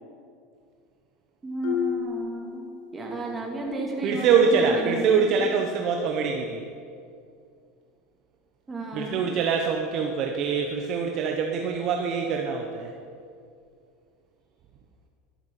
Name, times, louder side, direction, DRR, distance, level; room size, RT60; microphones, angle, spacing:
voice 1, 1.4-5.5 8.7-9.3, right 2 dB, 10° right, -1 dB, 2.5 m, -33 dB
Marimba xylophone, 1.6-3.4, left 9 dB, 65° left, 1.8 m, -32 dB
voice 2, 4.0-6.6 8.9-12.9, right 6 dB, 40° right, 2 dB, 1.1 m, -24 dB
12.5 x 12.5 x 6.7 m, 2.3 s
supercardioid pair, 155°, 0 cm